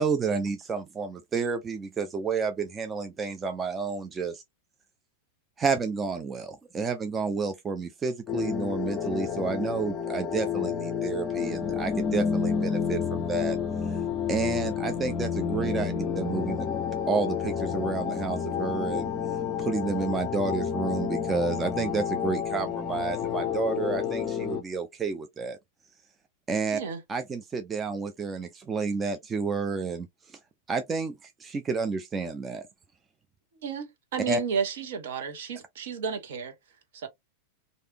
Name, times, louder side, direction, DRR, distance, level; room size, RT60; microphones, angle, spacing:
voice 1, 0.0-4.4 5.6-13.6 13.9-14.0 14.3-16.7 17.1-19.1 19.6-25.6 26.5-26.8 27.1-30.4 30.7-32.6 34.3-34.4, right 4 dB, 20° right, 0.5 m, -30 dB
sound 1, 8.3-24.6, left 7 dB, 30° left, 0.6 m, -30 dB
voice 2, 33.6-36.5 36.9-37.1, right 6 dB, 55° right, 1.2 m, -32 dB
3.2 x 2.7 x 2.8 m
figure-of-eight pair, 90°, 0 cm